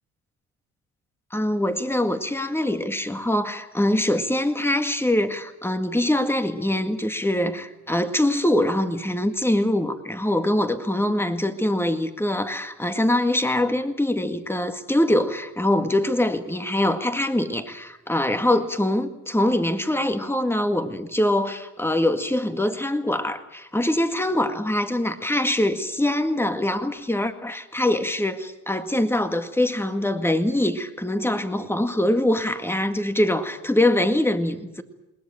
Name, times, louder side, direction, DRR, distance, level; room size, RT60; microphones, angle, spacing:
voice 1, 1.3-34.8, left 1 dB, 10° left, 8 dB, 2.0 m, -23 dB
21.0 x 19.0 x 8.9 m, 0.95 s
cardioid pair, 90°, 30 cm